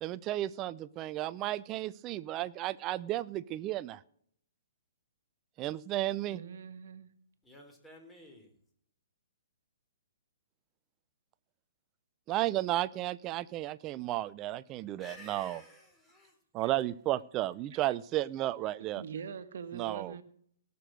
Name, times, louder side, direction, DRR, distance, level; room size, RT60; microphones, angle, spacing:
voice 1, 0.0-4.0 5.6-6.4 12.3-15.6 16.5-19.0 19.7-20.2, right 15 dB, 30° right, 17 dB, 0.5 m, -33 dB
voice 2, 6.3-7.1 16.6-16.7 18.8-20.2, right 7 dB, 60° right, 11 dB, 1.4 m, -43 dB
voice 3, 7.4-8.5 15.0-16.4, left 1 dB, 10° left, 2 dB, 3.8 m, -52 dB
18.0 x 6.9 x 6.4 m, 0.66 s
hypercardioid pair, 125°, 0 cm